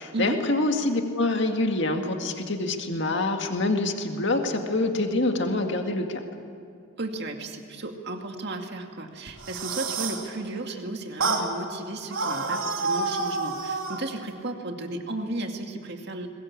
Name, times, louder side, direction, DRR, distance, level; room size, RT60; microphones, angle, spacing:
voice 1, 0.0-6.2, left 2 dB, 55° left, 4 dB, 2.0 m, -26 dB
voice 2, 7.0-16.3, right 2 dB, 50° right, 4 dB, 2.2 m, -34 dB
sound 1, 9.3-10.3 11.2-11.5 12.1-14.0, right 3 dB, 70° right, 2.9 m, -28 dB
22.0 x 21.0 x 8.7 m, 2.4 s
head